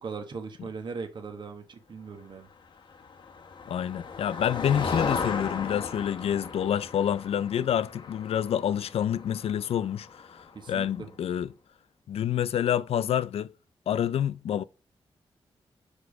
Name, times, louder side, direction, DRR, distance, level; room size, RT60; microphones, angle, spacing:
voice 1, 0.0-2.5 7.6-7.7 10.5-11.1, right 5 dB, 50° right, 1.2 m, -39 dB
Motor vehicle (road), 2.9-10.7, left 5 dB, 55° left, 0.9 m, -36 dB
voice 2, 3.7-11.5 12.1-13.5 13.9-14.6, left 9 dB, 80° left, 0.4 m, -28 dB
5.1 x 4.5 x 6.1 m
wide cardioid pair, 175°, 10 cm